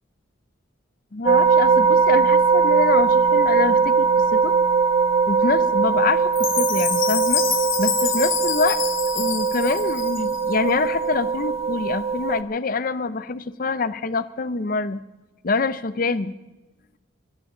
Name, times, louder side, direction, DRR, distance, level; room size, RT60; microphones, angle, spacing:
voice 1, 1.1-4.5 5.3-7.4 7.8-8.8 9.1-15.0 15.4-16.3, left 4 dB, 45° left, 15 dB, 0.6 m, -25 dB
sound 1, 1.3-12.4, right 5 dB, 30° right, 0.6 m, -20 dB
Chime, 6.3-10.5, left 10 dB, 80° left, 1.6 m, -27 dB
22.5 x 14.0 x 3.8 m, 1.1 s
head